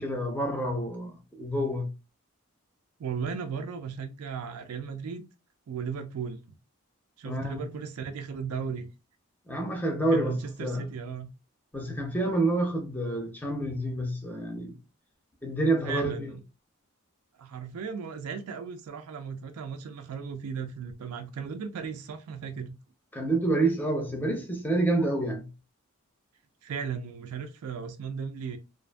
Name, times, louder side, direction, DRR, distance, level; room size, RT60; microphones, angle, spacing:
voice 1, 0.0-1.9 7.2-7.6 9.5-10.8 11.7-14.8 15.4-16.3 23.1-25.5, right 2 dB, 10° left, 0.5 m, -28 dB
voice 2, 3.0-5.2 5.7-6.5 7.2-8.9 10.1-11.3 15.8-16.4 17.3-22.8 26.6-28.6, right 6 dB, 80° right, 0.4 m, -36 dB
2.5 x 2.5 x 2.2 m
head